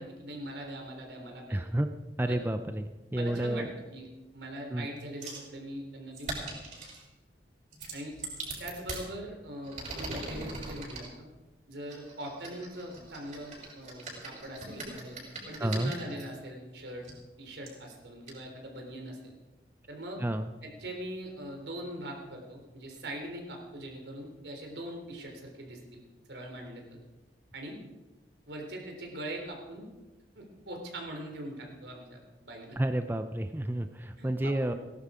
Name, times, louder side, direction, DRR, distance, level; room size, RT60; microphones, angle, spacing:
voice 1, 0.0-1.6 2.3-2.4 3.1-4.1 4.3-6.4 7.9-8.2 8.6-11.3 11.7-15.2 15.5-17.1 17.4-19.3 19.9-20.2 20.6-26.0 26.3-26.8 27.5-27.8 28.5-29.9 30.4-32.8 34.2-34.8, right 1 dB, 80° right, 2 dB, 3.6 m, -41 dB
voice 2, 1.5-1.9 2.2-3.7 4.7-4.9 15.6-15.9 20.2-20.5 32.8-34.7, right 1 dB, 10° right, 8 dB, 0.5 m, -30 dB
sound 1, 5.2-5.5 6.1-7.0 7.7-9.0 9.6-11.1 11.9-16.2 17.0-17.1 17.7-17.8 18.3-18.4, right 2 dB, 40° right, 6.2 m, -41 dB
18.0 x 11.5 x 5.0 m, 1.2 s
head